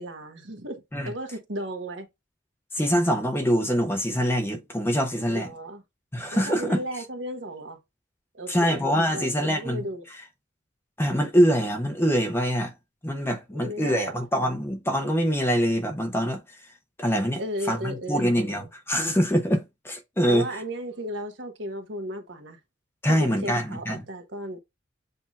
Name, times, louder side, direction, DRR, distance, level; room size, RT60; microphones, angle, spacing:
voice 1, 0.0-2.1 5.3-5.8 6.3-7.8 8.3-8.8 9.1-10.0 13.5-14.2 17.4-18.7 20.3-22.6 23.1-24.6, equal, 80° right, 1.2 m, -35 dB
voice 2, 2.7-5.5 6.1-6.8 8.5-9.8 11.0-12.7 13.0-16.4 17.0-17.4 17.7-20.5 23.0-24.0, equal, 15° left, 0.9 m, -24 dB
7.8 x 2.8 x 2.4 m
head